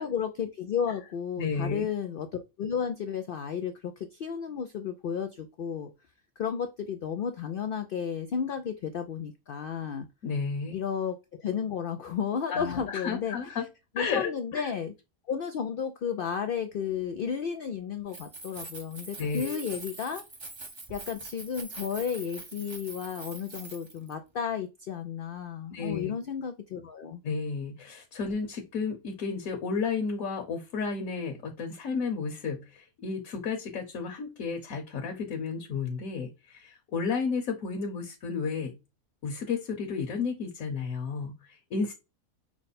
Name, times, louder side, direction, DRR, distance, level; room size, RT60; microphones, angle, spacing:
voice 1, 0.0-5.9 6.4-10.1 10.7-13.5 14.0-14.9 15.3-20.2 20.9-27.2, left 7 dB, 85° left, 7 dB, 0.4 m, -33 dB
voice 2, 1.4-1.8 10.2-10.8 12.5-13.6 14.0-14.7 19.2-19.6 25.7-26.1 27.2-38.7 39.2-41.9, left 5 dB, 70° left, 3 dB, 1.3 m, -32 dB
Keys jangling, 18.0-24.1, right 3 dB, 25° right, 0.6 m, -44 dB
5.9 x 2.1 x 4.1 m, 0.25 s
omnidirectional pair, 1.5 m